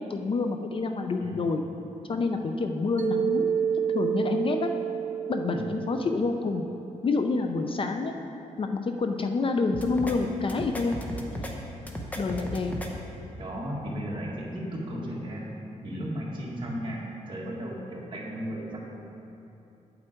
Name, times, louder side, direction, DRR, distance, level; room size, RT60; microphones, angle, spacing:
voice 1, 0.0-1.6 2.1-3.5 3.9-4.7 5.3-6.6 7.0-8.1 8.6-11.0 12.2-12.7, left 3 dB, 40° left, 5 dB, 0.5 m, -28 dB
Mallet percussion, 3.0-7.1, right 8 dB, 75° right, 0.5 m, -30 dB
sound 1, 9.7-10.2 10.5-11.5 11.9-12.9, equal, 10° left, 0.8 m, -35 dB
voice 2, 13.3-15.5 15.8-18.8, equal, 35° right, -4 dB, 1.7 m, -35 dB
8.8 x 7.8 x 4.5 m, 2.9 s
wide cardioid pair, 135°, 13 cm